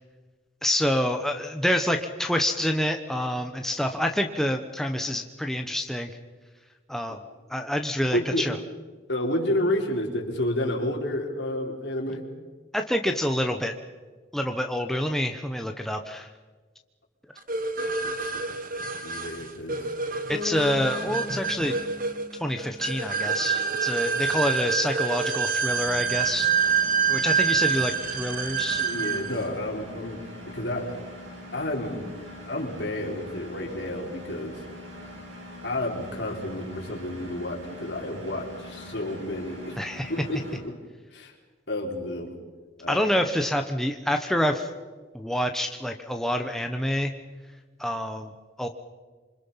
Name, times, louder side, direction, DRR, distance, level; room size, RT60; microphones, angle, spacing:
voice 1, 0.6-6.1 6.9-7.2 7.5-8.6 12.7-13.7 14.3-16.3 20.3-21.8 22.4-26.5 27.1-28.9 39.8-40.1 42.9-44.7 45.1-47.1 47.8-48.3 48.6-48.7, equal, ahead, 4 dB, 1.0 m, -27 dB
voice 2, 8.1-8.5 9.1-12.2 18.2-18.3 19.0-19.9 28.7-30.2 30.5-30.9 31.5-32.1 32.5-34.6 35.6-39.8 40.1-40.6 41.1-41.3 41.7-42.3 42.8-43.1, left 1 dB, 65° left, 0 dB, 4.5 m, -30 dB
sound 1, 17.5-29.4, right 5 dB, 50° right, 1.6 m, -27 dB
Bass guitar, 20.3-24.2, left 4 dB, 20° right, 4.6 m, -39 dB
Engine, 25.7-40.6, left 1 dB, 85° right, 7.2 m, -43 dB
27.0 x 25.0 x 5.8 m, 1.4 s
head